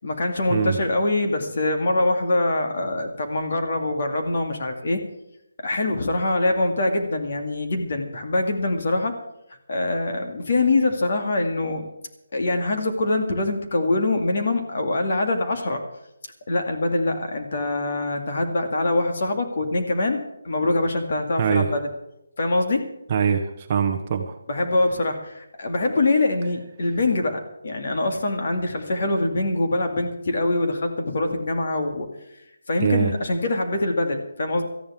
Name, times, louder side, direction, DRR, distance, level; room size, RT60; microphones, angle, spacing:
voice 1, 0.0-5.0 5.6-9.2 9.7-11.9 12.3-15.8 16.5-20.2 20.4-21.8 22.4-22.8 24.5-32.1 32.7-34.7, left 2 dB, 40° left, 4 dB, 2.3 m, -24 dB
voice 2, 21.4-21.7 23.1-24.4 32.8-33.1, right 7 dB, 25° right, 5 dB, 0.8 m, -22 dB
18.5 x 13.5 x 3.7 m, 0.85 s
hypercardioid pair, 175°, 0 cm